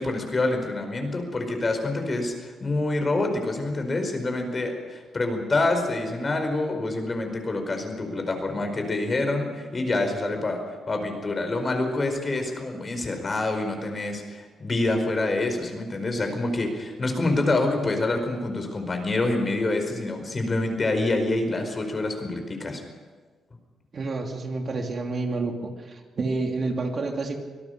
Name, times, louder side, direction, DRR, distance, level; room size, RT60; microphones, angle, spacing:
voice 1, 0.0-22.8, left 2 dB, 35° left, 5 dB, 4.8 m, -26 dB
voice 2, 23.9-27.3, right 3 dB, 45° right, 3 dB, 2.8 m, -29 dB
25.0 x 18.0 x 6.6 m, 1.4 s
cardioid pair, 100°, 0 cm